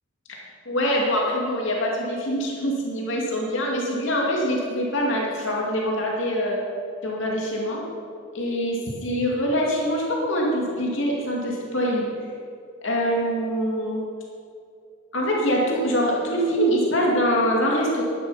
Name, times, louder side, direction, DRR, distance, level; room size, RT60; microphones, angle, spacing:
voice 1, 0.7-6.6 7.0-7.8 8.3-12.3 12.8-14.0 15.1-18.0, equal, 75° left, -2 dB, 2.3 m, -24 dB
12.0 x 10.5 x 5.7 m, 2.4 s
head